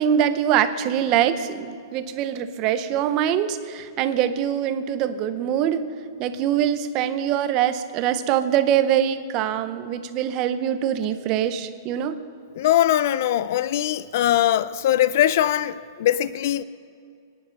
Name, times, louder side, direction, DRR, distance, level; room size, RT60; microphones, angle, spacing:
voice 1, 0.0-5.9 6.2-12.2, right 10 dB, 20° right, 0.6 m, -23 dB
voice 2, 12.6-16.6, left 12 dB, 40° left, 0.4 m, -21 dB
22.0 x 10.0 x 5.8 m
hypercardioid pair, 180°, 2 cm